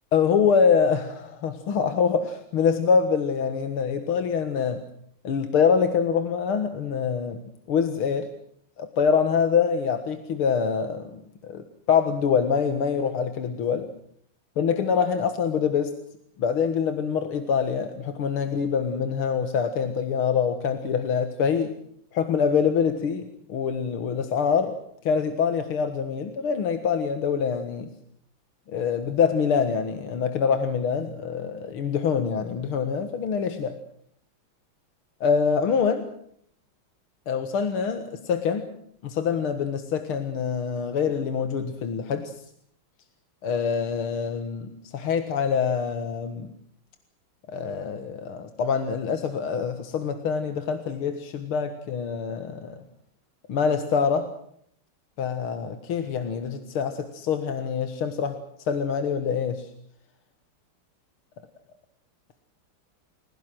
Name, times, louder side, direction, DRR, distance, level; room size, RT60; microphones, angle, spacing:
voice 1, 0.1-4.8 5.2-7.4 7.7-8.3 8.8-13.9 14.6-15.9 16.4-21.7 22.1-24.8 25.0-27.9 28.7-33.8 35.2-36.1 37.3-38.7 39.0-42.4 43.4-46.5 47.5-52.8 53.5-54.3 55.2-59.7, left 6 dB, 80° left, 8 dB, 2.4 m, -25 dB
30.0 x 17.5 x 7.9 m, 0.66 s
omnidirectional pair, 2.3 m